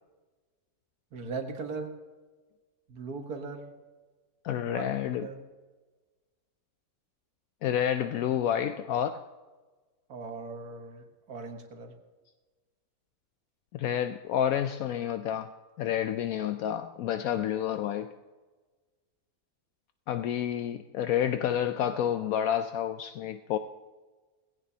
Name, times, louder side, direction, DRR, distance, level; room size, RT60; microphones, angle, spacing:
voice 1, 1.1-2.0 2.9-3.7 4.6-4.9 5.2-5.4 10.1-11.9, right 4 dB, 85° right, 5 dB, 2.0 m, -39 dB
voice 2, 4.4-5.3 7.6-9.1 13.7-15.5 15.8-18.1 20.1-23.6, left 10 dB, 75° left, 9 dB, 1.0 m, -29 dB
18.5 x 16.5 x 2.8 m, 1.3 s
omnidirectional pair, 1.6 m